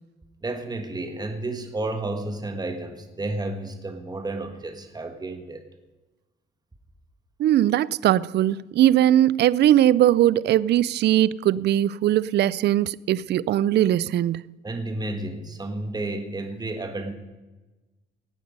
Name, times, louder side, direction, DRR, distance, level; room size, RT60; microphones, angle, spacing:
voice 1, 0.4-5.6 14.6-17.1, right 2 dB, 20° right, 1.7 m, -31 dB
voice 2, 7.4-14.4, right 12 dB, 60° right, 0.4 m, -20 dB
17.5 x 9.4 x 5.3 m
cardioid pair, 90°, 20 cm